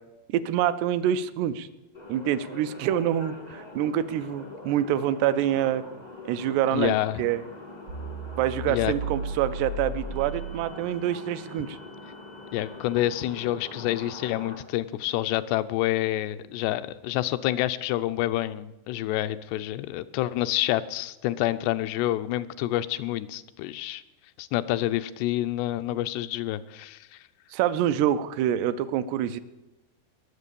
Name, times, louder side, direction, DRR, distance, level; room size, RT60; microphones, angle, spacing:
voice 1, 0.3-1.7 2.1-5.8 6.3-7.4 8.4-11.8 27.5-29.4, right 11 dB, 85° right, 12 dB, 2.7 m, -26 dB
sound 1, 1.9-14.6, left 2 dB, 35° left, 0.6 m, -44 dB
voice 2, 6.7-7.2 8.7-8.9 12.5-24.0 24.4-27.2, left 14 dB, 85° left, 12 dB, 2.7 m, -28 dB
sound 2, 7.9-11.1, right 2 dB, 65° right, 1.3 m, -35 dB
20.0 x 7.4 x 6.9 m, 0.98 s
omnidirectional pair, 4.8 m